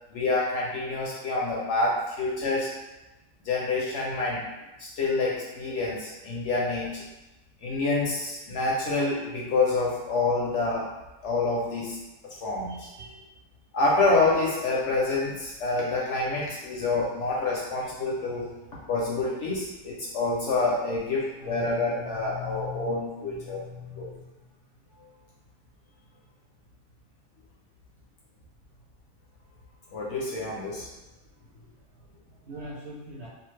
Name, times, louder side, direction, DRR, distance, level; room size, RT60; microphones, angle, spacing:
voice 1, 0.1-2.7 3.4-4.5 4.8-7.0 7.6-10.9 11.2-12.0 12.4-12.9 13.7-18.5 18.9-23.6 24.0-24.1 29.9-30.9, left 3 dB, 65° left, -4 dB, 0.8 m, -27 dB
voice 2, 12.7-13.3 18.3-18.4 21.4-23.0 23.4-24.3 32.4-33.3, left 3 dB, 60° right, -6 dB, 0.8 m, -40 dB
2.5 x 2.3 x 3.1 m, 1.0 s
omnidirectional pair, 1.5 m